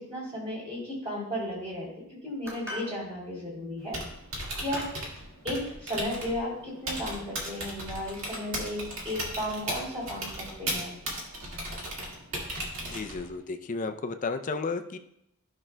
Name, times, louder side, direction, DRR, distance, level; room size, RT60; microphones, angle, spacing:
voice 1, 0.0-1.9 2.2-4.0 4.5-4.9 5.4-10.9, left 1 dB, 30° right, -4 dB, 3.1 m, -34 dB
sound 1, 2.4-3.0 3.9-4.1 4.7-5.0, equal, 15° right, 2.5 m, -40 dB
Typing, 3.8-13.4, right 1 dB, 60° right, 1.9 m, -37 dB
voice 2, 12.8-15.0, left 4 dB, 35° left, 7 dB, 0.4 m, -33 dB
13.5 x 6.0 x 2.2 m, 0.79 s
head